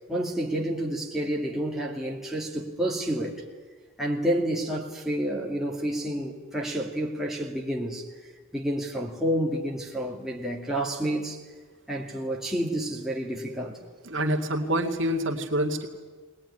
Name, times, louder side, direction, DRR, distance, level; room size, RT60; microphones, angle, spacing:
voice 1, 0.1-3.4 4.0-8.1 8.5-11.4 11.9-13.8, right 1 dB, ahead, 2.4 m, -29 dB
voice 2, 14.0-15.9, right 1 dB, 60° right, 2.2 m, -26 dB
20.0 x 20.0 x 10.0 m
head